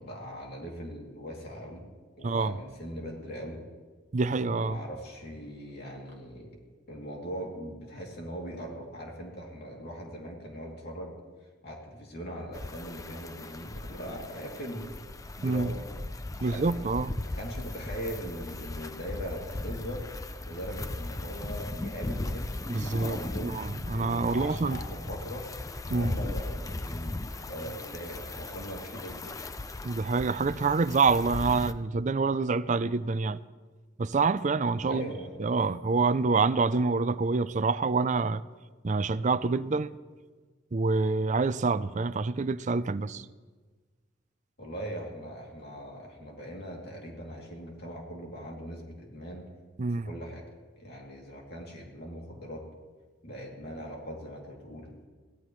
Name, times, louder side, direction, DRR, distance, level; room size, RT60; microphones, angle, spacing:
voice 1, 0.0-1.9 2.2-3.6 4.3-6.5 6.9-11.1 11.6-14.9 15.4-15.8 16.4-16.9 17.2-20.0 20.4-22.5 22.8-23.6 23.8-25.5 25.9-29.4 34.9-35.4 44.6-49.5 49.9-50.4 50.8-52.6 53.2-55.1, equal, 55° left, 2.8 m, -40 dB
voice 2, 2.2-2.5 4.1-4.8 15.4-15.7 16.4-17.2 22.7-24.8 25.9-26.1 29.8-33.4 34.0-35.1 35.4-38.4 38.8-39.9 40.7-43.3 49.8-50.1, right 4 dB, 40° right, 0.5 m, -27 dB
sound 1, 12.5-31.7, left 2 dB, 20° left, 0.5 m, -38 dB
23.0 x 17.0 x 3.2 m
head